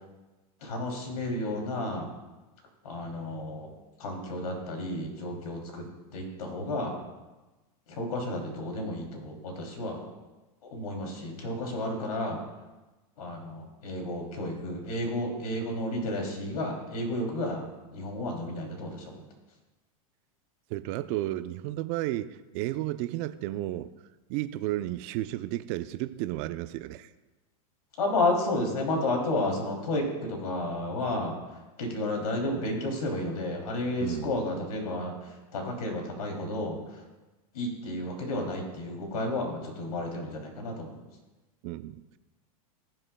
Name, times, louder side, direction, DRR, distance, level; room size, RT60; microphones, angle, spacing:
voice 1, 0.6-2.1 2.8-3.7 4.0-5.8 6.1-7.0 7.9-10.1 10.7-12.4 13.2-19.1 28.0-31.3 31.8-35.1 35.5-36.8 37.5-41.0, left 1 dB, 90° left, 1 dB, 2.9 m, -32 dB
voice 2, 20.7-23.9 24.3-27.1 34.0-34.4 41.6-42.0, right 15 dB, 50° right, 13 dB, 0.5 m, -33 dB
19.0 x 7.6 x 2.2 m, 1.1 s
supercardioid pair, 130°, 19 cm